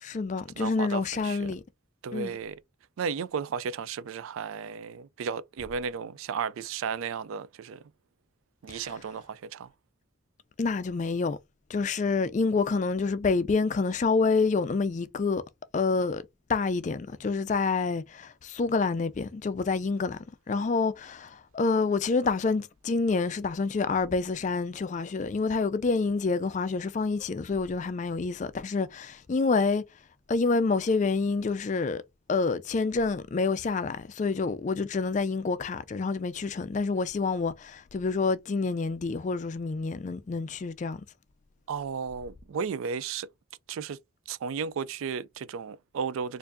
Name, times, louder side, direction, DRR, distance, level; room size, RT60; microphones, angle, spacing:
voice 1, 0.0-1.6 2.1-2.4 8.7-8.9 10.6-11.4 11.7-15.4 15.7-16.2 16.5-20.2 20.5-29.8 30.3-32.0 32.3-41.0, left 4 dB, 35° left, 0.3 m, -27 dB
voice 2, 0.6-1.5 2.0-2.6 3.0-7.8 8.6-9.7 41.7-43.3 43.7-44.0 44.3-46.4, right 6 dB, 80° right, 0.3 m, -34 dB
4.4 x 2.5 x 2.6 m
head